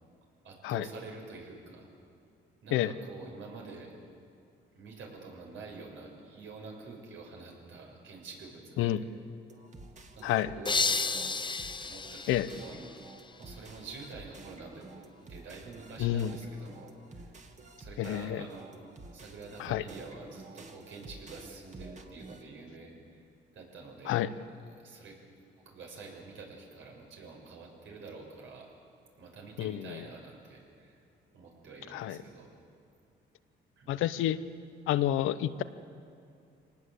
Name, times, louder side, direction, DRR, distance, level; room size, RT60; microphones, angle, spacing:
voice 1, 0.4-1.9 2.6-3.9 4.7-9.0 10.1-11.4 11.8-12.8 13.4-14.9 15.2-17.3 17.8-18.7 19.1-23.2 23.5-24.2 24.7-25.2 25.6-28.7 29.2-30.9 31.3-32.5 33.8-34.1, right 4 dB, 75° right, 0 dB, 6.4 m, -47 dB
sound 1, 9.5-22.4, right 2 dB, 35° right, 2.3 m, -50 dB
sound 2, 10.7-13.4, left 4 dB, 25° left, 0.7 m, -32 dB
voice 2, 16.0-16.3 18.0-18.4 19.6-19.8 24.1-24.3 29.6-30.0 31.9-32.2 33.9-34.4 34.9-35.6, left 13 dB, 90° left, 13 dB, 0.9 m, -29 dB
25.5 x 19.0 x 8.3 m, 2.5 s
cardioid pair, 90°, 20 cm